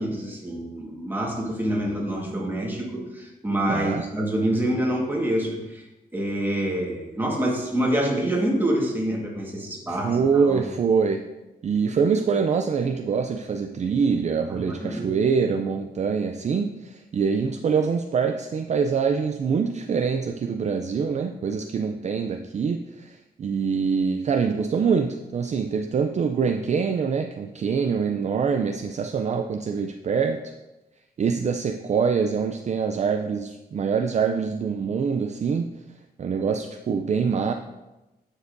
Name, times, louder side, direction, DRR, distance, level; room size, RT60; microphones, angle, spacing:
voice 1, 0.0-5.8 6.1-10.6 14.5-15.1, right 1 dB, 10° right, -2 dB, 1.5 m, -26 dB
voice 2, 3.7-4.0 9.9-11.2 11.6-30.5 31.2-35.7 36.2-37.5, right 6 dB, 45° right, 5 dB, 0.4 m, -24 dB
9.6 x 6.5 x 2.6 m, 1.0 s
wide cardioid pair, 140°, 17 cm